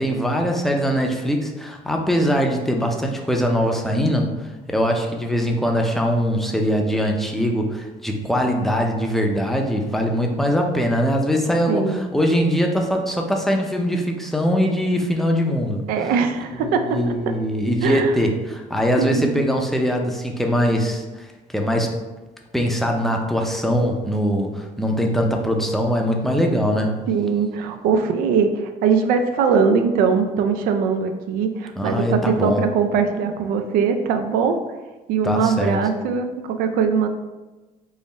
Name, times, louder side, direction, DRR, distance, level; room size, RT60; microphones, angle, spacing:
voice 1, 0.0-4.3 4.7-15.8 16.6-21.3 21.5-21.9 22.5-27.0 31.8-32.6 35.2-35.8, equal, ahead, 2 dB, 0.5 m, -22 dB
voice 2, 11.7-12.1 15.9-17.3 17.8-18.1 19.0-19.4 27.1-34.6 35.1-37.1, right 5 dB, 85° right, 7 dB, 0.4 m, -21 dB
3.7 x 2.0 x 4.0 m, 1.2 s
cardioid pair, 105°, 15 cm